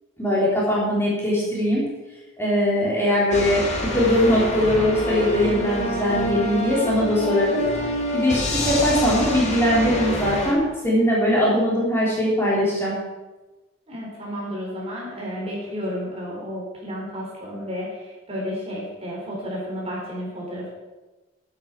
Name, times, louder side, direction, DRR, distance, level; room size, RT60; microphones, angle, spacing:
voice 1, 0.2-1.8 2.4-3.6 3.9-7.6 8.1-12.9, equal, 10° left, -6 dB, 3.8 m, -21 dB
sound 1, 3.3-10.5, left 1 dB, 35° left, 2.6 m, -27 dB
voice 2, 13.9-20.7, equal, 30° right, -4 dB, 3.8 m, -32 dB
11.5 x 8.7 x 6.0 m, 1.1 s
head